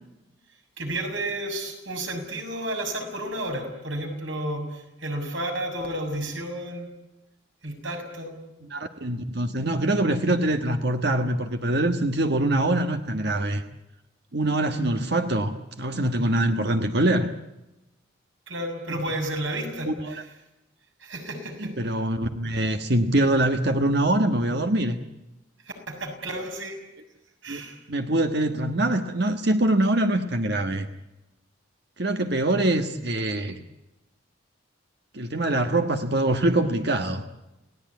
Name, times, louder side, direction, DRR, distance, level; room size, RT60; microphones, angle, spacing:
voice 1, 0.8-6.9 7.6-8.3 18.5-20.3 21.0-21.7 25.9-26.8 27.4-27.8, right 1 dB, 70° right, 4 dB, 6.7 m, -32 dB
voice 2, 8.7-13.6 14.3-17.3 18.9-19.0 19.9-20.1 21.6-25.0 27.5-27.6 27.9-30.9 32.0-33.6 35.1-37.2, right 1 dB, 55° right, 6 dB, 1.4 m, -24 dB
29.5 x 18.0 x 9.5 m, 0.99 s
head